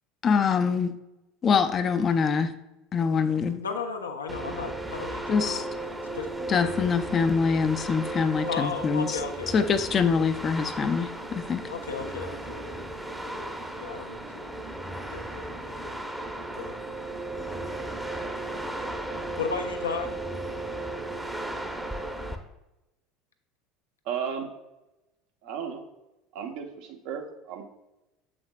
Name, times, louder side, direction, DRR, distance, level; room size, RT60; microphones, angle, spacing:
voice 1, 0.2-0.9 1.4-2.5 2.9-3.6 5.3-5.6 6.5-9.2 9.5-11.6, left 5 dB, 35° left, 9 dB, 0.5 m, -24 dB
voice 2, 3.6-5.6 6.1-6.3 8.5-9.8 11.7-12.8 13.3-14.5 15.1-15.9 16.6-16.8 19.4-20.1, left 5 dB, 85° left, 5 dB, 0.7 m, -35 dB
sound 1, 4.3-22.4, right 2 dB, 5° right, 0.8 m, -35 dB
voice 3, 24.1-24.5 25.4-25.8 26.3-27.7, right 7 dB, 60° right, 4 dB, 0.9 m, -34 dB
7.2 x 6.1 x 2.3 m, 0.96 s
figure-of-eight pair, 70°, 0 cm